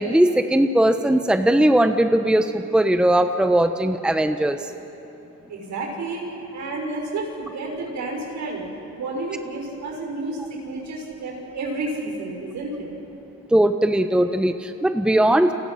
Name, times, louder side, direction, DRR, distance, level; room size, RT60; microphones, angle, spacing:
voice 1, 0.0-4.7 13.5-15.5, right 1 dB, 5° right, 8 dB, 1.0 m, -19 dB
voice 2, 5.5-6.3 6.5-8.6 8.9-12.9, right 2 dB, 70° right, 0 dB, 6.4 m, -30 dB
29.5 x 25.0 x 5.8 m, 2.9 s
cardioid pair, 90°, 30 cm